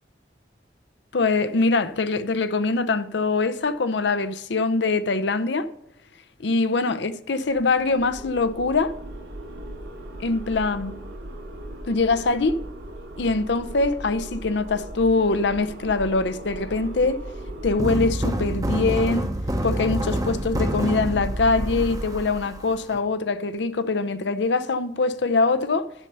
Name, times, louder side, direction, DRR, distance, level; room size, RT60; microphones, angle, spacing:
voice 1, 1.1-5.7 6.4-8.9 10.2-10.9 11.9-12.6 13.2-17.2 17.6-19.3 19.6-25.9, left 3 dB, 75° left, 0.6 m, -23 dB
sound 1, 7.5-17.9, right 1 dB, 70° right, 2.3 m, -38 dB
sound 2, 17.8-23.0, right 1 dB, 20° right, 0.7 m, -27 dB
11.5 x 5.4 x 6.7 m
head